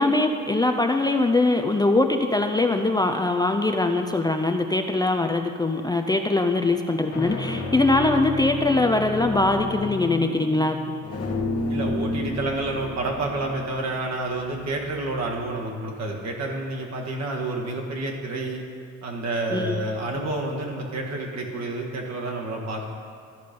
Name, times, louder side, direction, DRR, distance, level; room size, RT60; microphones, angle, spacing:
voice 1, 0.0-10.8 19.5-19.9, left 2 dB, 15° left, 5 dB, 0.5 m, -22 dB
sound 1, 5.6-6.1 6.9-15.5, left 3 dB, 50° left, 1.5 m, -32 dB
voice 2, 11.7-18.6 19.0-22.9, right 2 dB, 60° right, -1 dB, 1.7 m, -29 dB
13.0 x 5.1 x 5.3 m, 2.3 s
cardioid pair, 90°, 30 cm